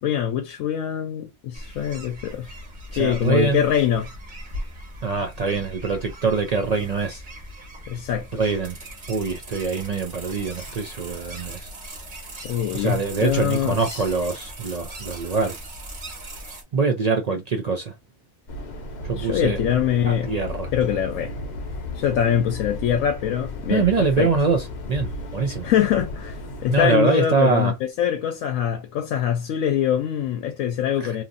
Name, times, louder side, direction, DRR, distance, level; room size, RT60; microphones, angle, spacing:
voice 1, 0.0-2.5 2.9-4.1 7.9-8.4 12.4-14.0 19.2-20.3 20.7-21.3 22.0-23.9 24.2-24.3 25.6-31.2, left 9 dB, 85° left, 1.0 m, -23 dB
sound 1, 1.5-16.6, right 1 dB, 40° right, 1.2 m, -39 dB
voice 2, 2.9-3.6 5.0-7.2 8.3-8.8 9.1-11.7 12.7-15.6 16.7-17.9 19.0-19.6 20.0-20.7 23.7-25.7 26.7-27.7 31.0-31.1, right 4 dB, 70° right, 0.3 m, -24 dB
sound 2, 18.5-26.8, left 2 dB, 45° left, 0.6 m, -34 dB
2.9 x 2.5 x 2.5 m
omnidirectional pair, 1.4 m